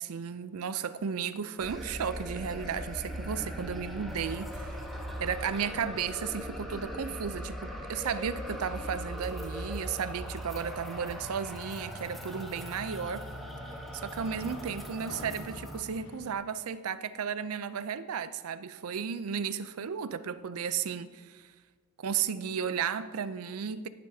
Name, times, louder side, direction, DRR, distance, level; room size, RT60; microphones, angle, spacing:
voice 1, 0.0-4.8 5.2-13.3 13.9-21.4 22.0-23.9, right 7 dB, 85° right, 0.5 m, -34 dB
sound 1, 1.6-15.8, equal, ahead, 1.1 m, -40 dB
sound 2, 4.9-16.3, left 2 dB, 65° left, 1.0 m, -51 dB
19.5 x 7.5 x 2.7 m
head